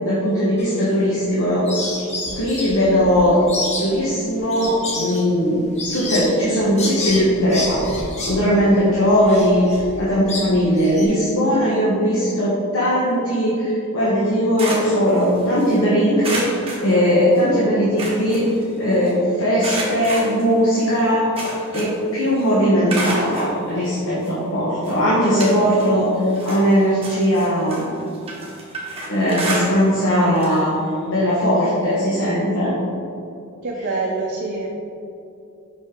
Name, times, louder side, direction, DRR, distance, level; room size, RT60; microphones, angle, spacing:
voice 1, 0.0-1.7 2.3-3.5 3.8-5.6 5.9-7.8 8.3-16.4 16.8-18.5 18.8-21.2 21.7-26.1 26.4-27.9 29.1-30.7 31.1-32.7, equal, 65° left, -8 dB, 1.2 m, -19 dB
sound 1, 0.6-1.3 1.7-11.0, left 2 dB, 30° left, 1.0 m, -30 dB
sound 2, 14.2-15.8 16.2-17.5 17.8-19.1 19.6-22.1 22.4-23.5 24.2-24.3 24.8-26.0 26.3-30.1 30.4-30.6 30.9-31.0 32.3-32.4, right 2 dB, 25° right, 1.4 m, -30 dB
voice 2, 19.3-19.6 33.6-34.7, right 3 dB, 50° right, -3 dB, 0.7 m, -26 dB
5.6 x 5.6 x 3.7 m, 2.7 s
head